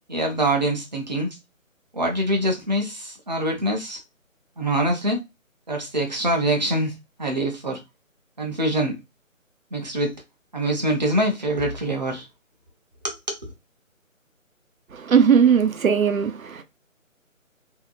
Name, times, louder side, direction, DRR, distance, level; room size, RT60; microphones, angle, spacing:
voice 1, 0.1-1.4 1.9-4.0 4.6-5.2 5.7-7.8 8.4-8.9 9.7-10.1 10.5-12.3 13.0-13.5, right 1 dB, 35° right, 0.6 m, -24 dB
voice 2, 15.0-16.6, right 7 dB, 80° right, 0.7 m, -18 dB
2.7 x 2.1 x 2.3 m
figure-of-eight pair, 155°, 41 cm